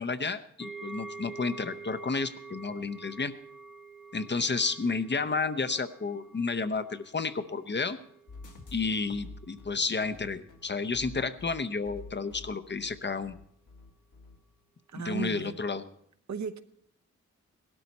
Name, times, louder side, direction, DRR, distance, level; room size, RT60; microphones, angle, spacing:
voice 1, 0.0-3.3 4.1-8.0 8.7-13.4 14.9-15.8, left 4 dB, 35° left, 0.7 m, -31 dB
sound 1, 0.6-9.7 10.0-10.2 10.7-10.8, right 4 dB, ahead, 0.8 m, -47 dB
sound 2, 8.3-14.4, left 3 dB, 80° left, 2.0 m, -48 dB
voice 2, 14.9-15.6 16.3-16.6, right 6 dB, 65° right, 0.9 m, -35 dB
17.0 x 12.5 x 4.2 m
wide cardioid pair, 80°, 30 cm